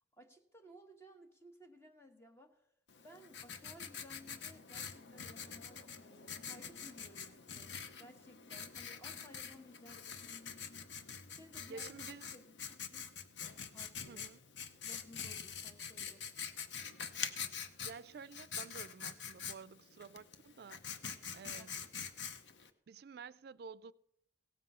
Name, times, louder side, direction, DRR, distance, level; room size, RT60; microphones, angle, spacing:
voice 1, 0.2-2.7 3.0-10.4 11.3-13.1 13.7-14.3 14.8-16.3 21.3-21.9, equal, 15° left, 1.2 m, -59 dB
Writing, 2.9-22.7, left 7 dB, 75° left, 0.8 m, -45 dB
voice 2, 11.7-12.3 14.1-14.4 17.8-20.8 21.3-21.8 22.9-23.9, right 5 dB, 60° right, 0.4 m, -51 dB
17.0 x 7.5 x 5.5 m
head